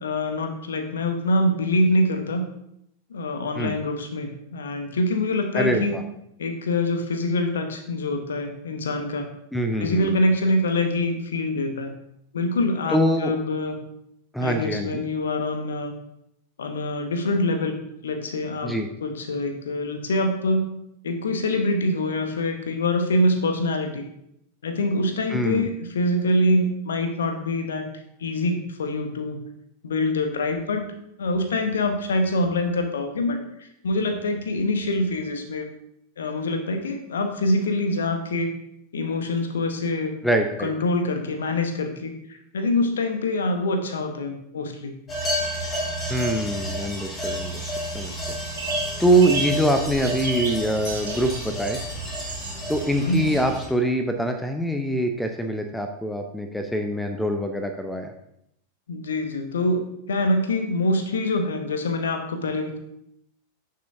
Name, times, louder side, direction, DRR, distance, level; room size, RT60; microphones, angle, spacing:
voice 1, 0.0-2.5 3.1-6.0 6.4-9.3 9.8-11.9 12.3-13.8 14.4-15.9 16.6-17.8 18.0-18.7 19.0-20.7 21.0-24.1 24.6-27.9 28.2-29.4 29.8-30.9 31.2-33.4 33.8-35.7 36.2-38.5 38.9-40.1 40.6-44.9 53.0-53.3 58.9-59.8 60.1-62.8, left 1 dB, 65° left, 7 dB, 1.1 m, -25 dB
voice 2, 5.5-6.0 9.5-10.2 12.9-13.3 14.3-15.0 18.6-18.9 25.3-25.7 40.2-40.7 46.1-47.6 47.9-48.4 49.0-51.8 52.7-58.1, right 1 dB, 5° left, 6 dB, 0.7 m, -24 dB
sound 1, 45.1-53.7, equal, 20° left, 2.7 m, -31 dB
sound 2, 48.6-48.9 49.2-49.5 50.0-50.6 50.8-52.5, right 4 dB, 65° right, 2.4 m, -31 dB
9.6 x 6.8 x 2.8 m, 0.76 s
figure-of-eight pair, 90°, 0 cm